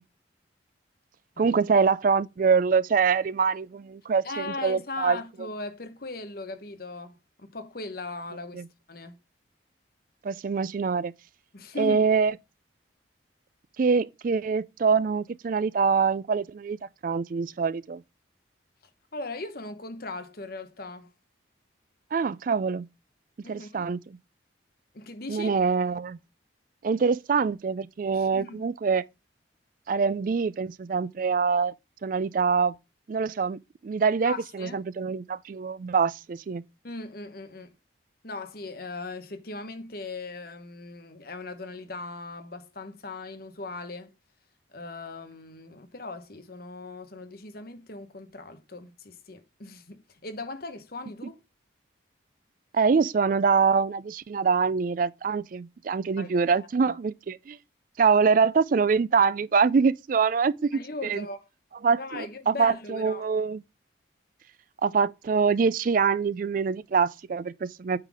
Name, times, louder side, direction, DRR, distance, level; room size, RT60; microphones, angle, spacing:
voice 1, 1.4-5.2 8.5-8.6 10.2-11.1 11.8-12.3 13.8-16.8 17.0-18.0 22.1-22.9 23.5-24.0 25.3-26.2 26.8-29.0 29.9-31.7 32.0-32.7 33.1-36.6 52.7-57.6 58.0-61.3 61.8-63.6 64.8-68.0, right 5 dB, 45° right, 0.3 m, -24 dB
voice 2, 4.2-8.6 8.9-9.2 11.5-12.0 19.1-21.1 23.4-23.9 24.9-25.5 28.1-28.6 34.2-34.8 36.8-37.7 38.2-44.1 44.7-51.4 56.2-57.0 60.7-61.5 62.0-63.3, left 2 dB, 50° left, 1.0 m, -39 dB
8.8 x 3.9 x 4.8 m
head